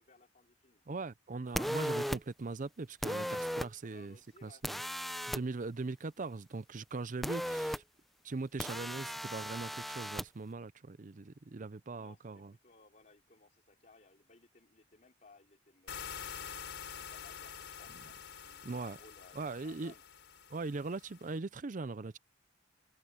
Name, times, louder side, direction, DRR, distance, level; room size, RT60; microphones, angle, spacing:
voice 1, 0.0-0.9 3.8-4.7 11.9-16.7 16.9-20.0, left 3 dB, 40° left, 3.1 m, -62 dB
voice 2, 0.9-4.8 5.3-7.8 8.2-12.5 18.6-19.0 19.3-19.9 20.5-22.2, right 3 dB, 40° right, 0.6 m, -40 dB
sound 1, 1.5-2.2 3.0-3.7 4.6-5.4 7.2-7.8 8.6-10.2, equal, ahead, 0.7 m, -36 dB
sound 2, 15.9-21.4, left 7 dB, 70° left, 4.4 m, -47 dB
head